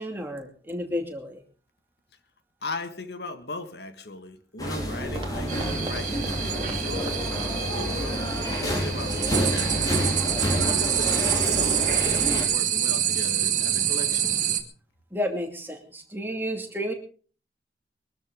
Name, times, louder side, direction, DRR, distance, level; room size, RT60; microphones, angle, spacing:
voice 1, 0.0-1.4 15.1-16.9, equal, 10° right, 3 dB, 2.6 m, -31 dB
voice 2, 2.6-7.3 7.7-8.4 8.6-10.2 10.5-14.3, left 2 dB, 70° left, 9 dB, 1.7 m, -38 dB
sound 1, 4.6-12.4, equal, 20° left, 5.1 m, -28 dB
sound 2, 4.9-7.9 8.2-8.3 8.9-9.0, right 1 dB, 30° right, 2.4 m, -42 dB
sound 3, 5.5-14.6, right 9 dB, 45° right, 2.2 m, -26 dB
23.0 x 13.0 x 3.7 m, 0.39 s
head